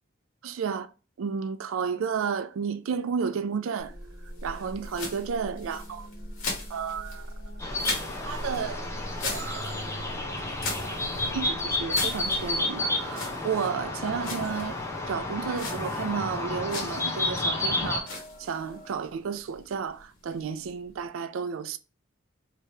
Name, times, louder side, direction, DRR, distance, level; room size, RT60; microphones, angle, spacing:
voice 1, 0.4-0.9 1.2-3.9 4.4-6.1 6.7-7.3 8.2-8.9 9.2-9.7 10.2-10.5 11.3-14.8 15.1-21.8, right 6 dB, 80° right, 0.4 m, -32 dB
sound 1, 3.0-19.1, left 1 dB, 50° left, 1.1 m, -47 dB
sound 2, 3.8-21.1, left 2 dB, 85° left, 1.3 m, -39 dB
sound 3, 7.6-18.0, left 2 dB, 15° left, 0.6 m, -31 dB
3.3 x 2.9 x 2.8 m
head